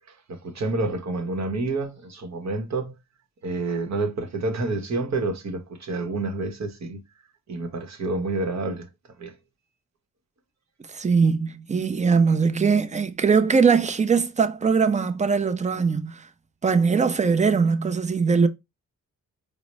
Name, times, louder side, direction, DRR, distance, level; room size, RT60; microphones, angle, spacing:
voice 1, 0.1-3.0 3.4-7.0 7.5-8.9 9.2-9.3, right 2 dB, 50° right, 0.9 m, -28 dB
voice 2, 10.9-16.3 16.6-18.5, right 5 dB, 20° right, 0.5 m, -21 dB
4.0 x 2.0 x 3.1 m
cardioid pair, 60°, 35 cm